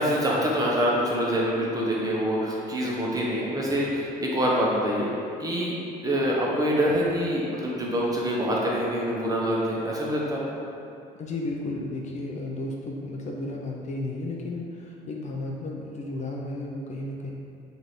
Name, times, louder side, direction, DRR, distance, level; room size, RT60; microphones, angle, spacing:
voice 1, 0.0-5.1 5.4-5.8 6.0-10.4, equal, 20° right, -4 dB, 0.7 m, -25 dB
voice 2, 11.2-17.3, left 2 dB, 45° left, -1 dB, 0.4 m, -33 dB
3.1 x 2.6 x 4.1 m, 2.6 s
cardioid pair, 110°, 17 cm